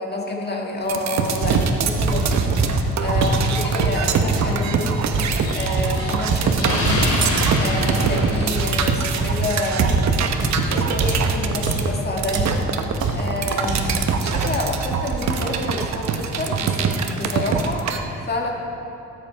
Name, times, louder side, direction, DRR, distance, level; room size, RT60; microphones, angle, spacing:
voice 1, 0.0-5.1 5.5-7.0 7.6-12.6 13.1-18.5, left 2 dB, 35° left, 0 dB, 1.8 m, -28 dB
sound 1, 0.9-18.0, right 5 dB, 65° right, 1.1 m, -23 dB
sound 2, 1.4-4.6 5.1-9.5 9.8-12.0 12.3-12.7 13.0-13.3 13.6-14.1 14.3-14.7, right 3 dB, 85° right, 2.3 m, -24 dB
Explosion, 5.4-9.3, left 1 dB, 65° left, 3.0 m, -26 dB
18.0 x 8.0 x 4.6 m, 2.8 s
cardioid pair, 90°, 30 cm